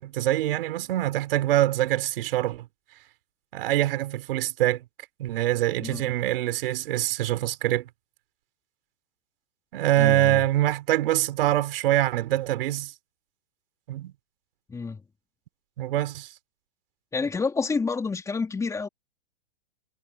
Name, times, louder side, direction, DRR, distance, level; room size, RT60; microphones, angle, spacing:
voice 1, 0.0-2.7 3.5-4.8 5.2-7.9 9.7-12.9 13.9-14.1 15.8-16.3, right 14 dB, 60° right, 4.1 m, -24 dB
voice 2, 9.9-10.4 14.7-15.0 17.1-18.9, left 4 dB, 10° left, 3.4 m, -28 dB
hypercardioid pair, 145°, 32 cm